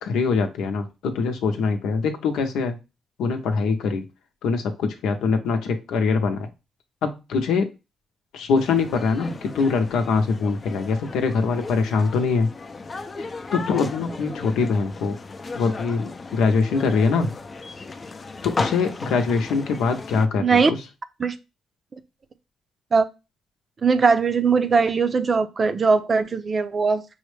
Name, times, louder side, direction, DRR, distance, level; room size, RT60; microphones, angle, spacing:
voice 1, 0.0-2.8 3.2-4.0 4.4-6.5 7.0-7.7 8.3-12.5 13.2-15.2 15.6-17.3 18.4-20.8, left 4 dB, 85° left, 0.7 m, -23 dB
sound 1, 8.5-20.3, left 3 dB, 35° left, 0.5 m, -35 dB
voice 2, 20.4-20.7 21.2-21.4 21.9-22.0 22.9-23.1 23.8-27.1, right 5 dB, 40° right, 0.5 m, -20 dB
5.4 x 2.1 x 3.2 m
cardioid pair, 75°, 0 cm